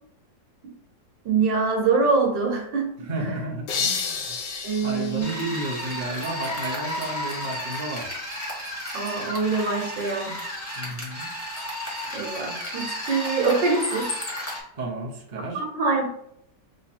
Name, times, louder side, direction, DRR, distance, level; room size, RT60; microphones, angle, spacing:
voice 1, 1.3-2.9 4.6-5.4 8.9-10.4 12.1-14.1 15.5-16.0, right 4 dB, 80° right, 1 dB, 1.7 m, -24 dB
voice 2, 3.0-4.4 4.8-8.1 10.8-11.3 14.7-15.6, right 2 dB, 35° right, -2 dB, 0.8 m, -32 dB
sound 1, 3.7-6.5, left 5 dB, 75° left, 1.4 m, -31 dB
sound 2, 5.2-14.6, left 1 dB, 10° left, 1.2 m, -33 dB
3.7 x 2.9 x 4.2 m, 0.72 s
omnidirectional pair, 2.0 m